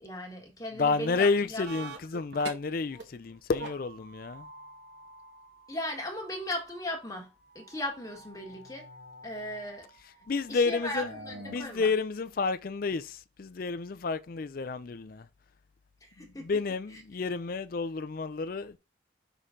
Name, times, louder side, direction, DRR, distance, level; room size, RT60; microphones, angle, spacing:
voice 1, 0.0-1.9 5.7-7.3 7.5-8.9 9.2-9.9 10.5-11.9 16.0-16.6 16.9-17.0, left 1 dB, 15° left, 1.6 m, -37 dB
voice 2, 0.8-4.5 10.3-11.1 11.5-15.3 16.2-18.8, left 4 dB, 45° left, 0.4 m, -30 dB
sound 1, 1.6-3.0 3.3-11.6, right 2 dB, 60° right, 1.4 m, -47 dB
6.3 x 3.9 x 3.7 m
head